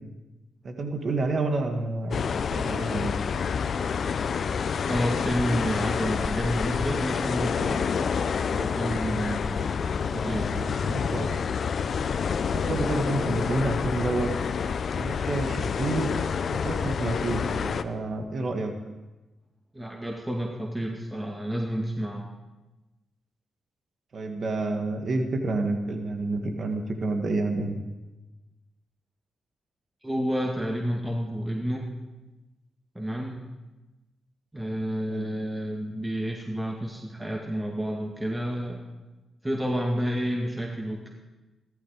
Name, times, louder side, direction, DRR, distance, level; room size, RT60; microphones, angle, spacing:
voice 1, 0.6-3.1 10.0-11.4 12.4-14.3 14.9-16.1 16.5-18.7 24.1-27.8 35.1-35.3, right 2 dB, 55° right, 4 dB, 1.8 m, -29 dB
sound 1, 2.1-17.8, left 6 dB, 60° left, 0.7 m, -28 dB
voice 2, 4.9-7.9 8.5-9.8 10.0-10.5 19.7-22.3 30.0-31.9 32.9-33.4 34.5-38.8 39.4-41.1, equal, 15° right, 0 dB, 2.2 m, -30 dB
15.5 x 13.0 x 5.1 m, 1.1 s
supercardioid pair, 45°, 0 cm